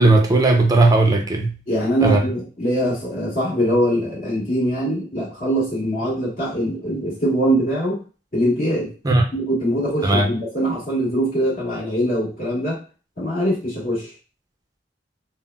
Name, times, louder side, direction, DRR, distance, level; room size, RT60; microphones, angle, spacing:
voice 1, 0.0-1.5 2.0-2.2 9.0-9.2 10.0-10.3, right 2 dB, 20° right, 0.5 m, -16 dB
voice 2, 1.7-8.0 8.3-8.9 9.3-12.8 13.2-14.1, equal, 55° left, 1.4 m, -22 dB
3.7 x 2.1 x 2.2 m
head